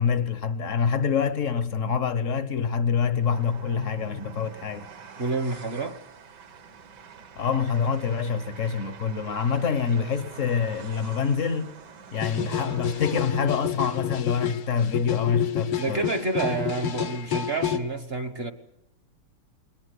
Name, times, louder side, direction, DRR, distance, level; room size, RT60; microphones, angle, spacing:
voice 1, 0.0-4.9 7.4-11.7 12.1-16.1, left 6 dB, 45° left, 1.2 m, -26 dB
Train, 3.2-13.7, right 6 dB, 55° right, 1.7 m, -46 dB
voice 2, 5.2-6.0 15.8-18.5, right 3 dB, 35° right, 1.2 m, -29 dB
sound 1, 12.1-17.8, left 9 dB, 80° left, 2.3 m, -29 dB
21.5 x 19.5 x 8.2 m
omnidirectional pair, 2.4 m